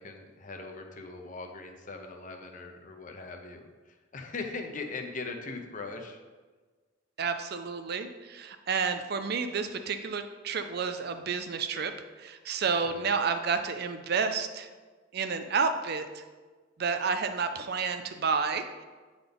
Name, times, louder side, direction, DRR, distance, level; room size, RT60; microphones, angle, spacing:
voice 1, 0.0-3.6 4.1-6.2 12.8-13.1, left 3 dB, 45° left, 4 dB, 0.7 m, -40 dB
voice 2, 7.2-11.9 12.2-14.7 15.1-16.2 16.8-18.8, right 5 dB, 55° right, 8 dB, 0.5 m, -30 dB
8.9 x 3.9 x 3.5 m, 1.4 s
head